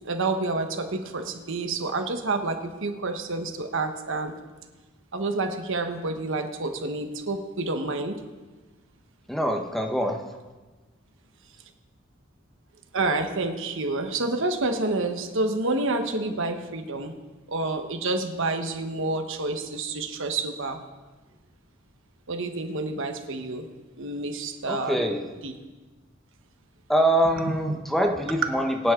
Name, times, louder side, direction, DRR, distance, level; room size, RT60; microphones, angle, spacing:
voice 1, 0.0-4.3 5.1-8.2 12.9-17.2 17.5-20.8 22.3-23.6 24.0-25.0 25.4-25.5 27.4-27.8, right 2 dB, 65° right, 6 dB, 1.2 m, -28 dB
voice 2, 9.3-10.2 24.7-25.3 26.9-28.9, equal, ahead, 3 dB, 1.0 m, -24 dB
22.5 x 9.8 x 3.8 m, 1.2 s
head